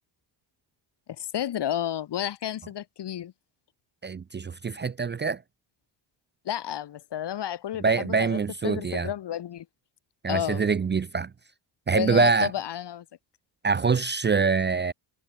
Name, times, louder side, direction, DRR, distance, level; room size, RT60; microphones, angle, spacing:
voice 1, 1.2-3.3 6.5-9.7 10.3-10.6 11.9-13.1, left 11 dB, 60° left, 3.7 m, -31 dB
voice 2, 4.0-5.4 7.8-9.1 10.2-11.3 11.9-12.5 13.6-14.9, right 5 dB, 25° right, 0.7 m, -24 dB
cardioid pair, 120°, 45 cm